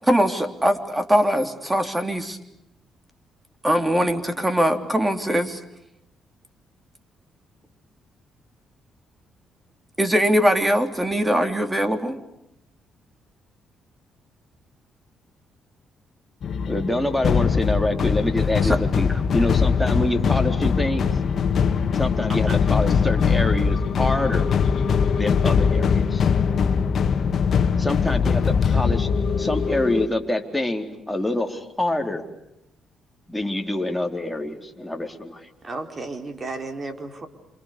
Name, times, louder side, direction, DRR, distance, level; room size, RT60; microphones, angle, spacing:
voice 1, 0.0-2.4 3.6-5.6 10.0-12.2 18.6-18.8, equal, 15° right, 7 dB, 3.4 m, -21 dB
sound 1, 16.4-30.1, left 6 dB, 55° left, 1.8 m, -21 dB
voice 2, 16.6-21.1 21.9-24.5 25.1-26.3 27.8-29.1 29.4-32.2 33.3-35.5, left 1 dB, 5° left, 3 dB, 4.0 m, -26 dB
voice 3, 22.3-22.6 35.6-37.3, right 3 dB, 30° right, 6 dB, 4.5 m, -33 dB
28.5 x 27.5 x 6.9 m, 0.85 s
cardioid pair, 90°, 0 cm